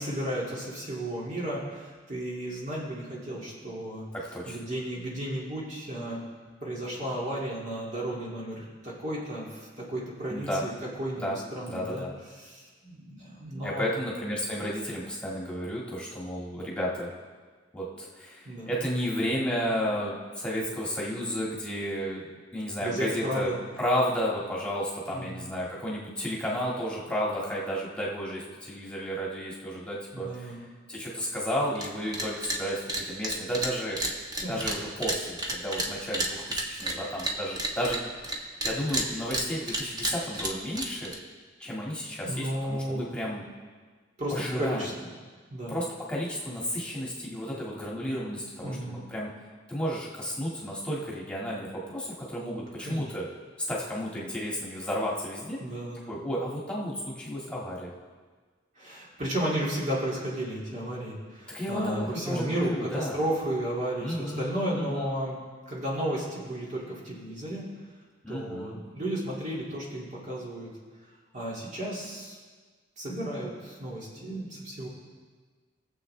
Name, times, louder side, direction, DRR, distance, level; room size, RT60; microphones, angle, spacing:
voice 1, 0.0-4.1 4.5-6.2 6.6-10.7 11.0-12.1 12.4-13.9 18.4-18.7 22.8-23.6 25.1-25.6 30.1-30.7 34.4-34.6 42.2-43.1 44.2-44.9 45.5-45.8 48.6-49.0 52.8-53.0 55.6-56.1 58.8-65.4 65.7-67.7 68.3-70.7 71.3-72.4 73.0-74.9, right 1 dB, 40° right, -5 dB, 2.2 m, -33 dB
voice 2, 4.1-4.6 10.3-10.6 11.2-11.4 11.7-12.1 13.6-17.1 17.7-22.2 22.5-23.5 23.8-30.6 30.9-34.0 34.5-38.1 38.6-41.1 41.6-43.4 44.3-44.9 45.7-49.3 49.7-53.3 53.7-55.6 56.1-57.9 61.5-63.2 64.0-65.1 68.2-68.8, equal, 5° left, -5 dB, 1.8 m, -32 dB
sound 1, 31.7-31.9 32.1-32.6 32.9-38.4 38.6-41.2, right 1 dB, 20° right, 1.1 m, -31 dB
20.0 x 7.5 x 3.2 m, 1.4 s
head